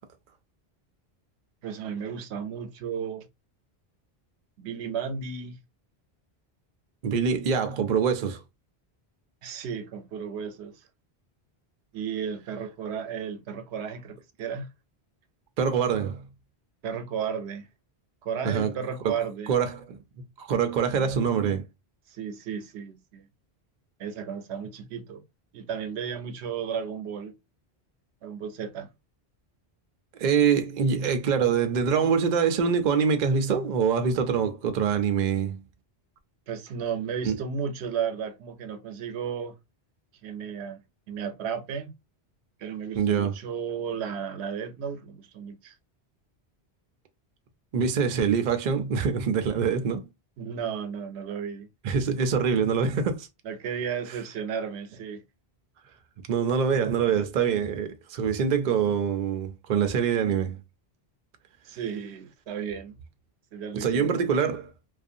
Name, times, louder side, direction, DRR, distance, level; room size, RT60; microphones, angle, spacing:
voice 1, 1.6-3.3 4.6-5.6 9.4-10.8 11.9-14.7 16.8-17.7 18.2-19.5 20.9-21.1 22.1-23.3 24.0-25.2 25.5-27.3 28.2-28.9 36.5-39.6 40.2-40.8 41.1-41.9 42.6-45.7 50.4-51.7 53.4-55.2 56.8-56.9 61.6-63.0 63.5-64.1, right 7 dB, 90° right, 0.9 m, -34 dB
voice 2, 7.0-8.4 15.6-16.3 18.4-18.7 19.0-19.1 19.5-21.7 30.2-35.6 37.2-37.3 43.0-43.3 47.7-50.1 51.8-53.3 56.3-60.6 63.7-64.7, right 6 dB, 55° right, 0.6 m, -25 dB
2.5 x 2.4 x 2.5 m
omnidirectional pair, 1.1 m